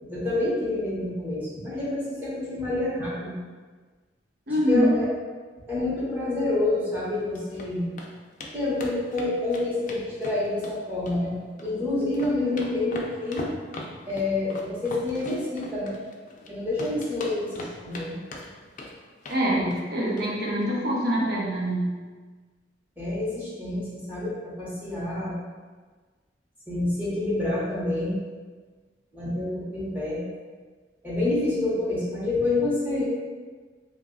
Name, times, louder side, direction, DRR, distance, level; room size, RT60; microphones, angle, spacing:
voice 1, 0.1-3.3 4.5-5.1 5.7-7.9 8.5-11.3 11.6-13.5 14.1-16.0 16.5-18.2 19.5-19.7 23.0-25.4 26.7-28.2 29.1-30.2 31.0-33.0, left 2 dB, 10° right, -8 dB, 0.8 m, -28 dB
voice 2, 4.5-4.9 19.3-21.9, equal, 60° right, -4 dB, 0.8 m, -24 dB
sound 1, 7.1-7.7 8.0-8.1 8.4-8.5 8.8-10.8 11.1-11.7 12.0-16.5 16.8-18.1 18.3-18.9 19.2-19.4 19.7-19.9 20.2-20.3 20.6-20.7, left 2 dB, 45° left, 0.4 m, -39 dB
2.9 x 2.2 x 3.7 m, 1.4 s
head